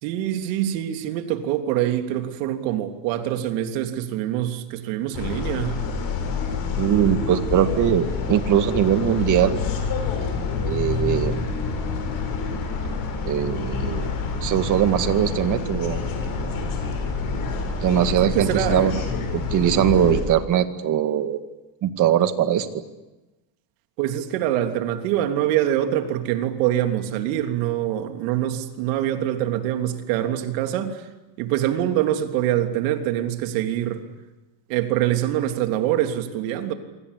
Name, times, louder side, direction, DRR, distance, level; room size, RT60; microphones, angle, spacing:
voice 1, 0.0-5.8 18.2-18.9 24.0-31.0 31.4-34.0 34.7-36.7, right 12 dB, 80° right, 7 dB, 3.4 m, -24 dB
sound 1, 5.1-20.2, left 4 dB, 45° left, 7.1 m, -27 dB
voice 2, 6.8-9.6 10.6-11.4 13.3-14.1 14.4-16.0 17.8-19.0 19.3-21.4 21.8-22.7, right 10 dB, 40° right, 10 dB, 2.1 m, -21 dB
27.5 x 25.0 x 8.5 m, 1.1 s
cardioid pair, 165°, 48 cm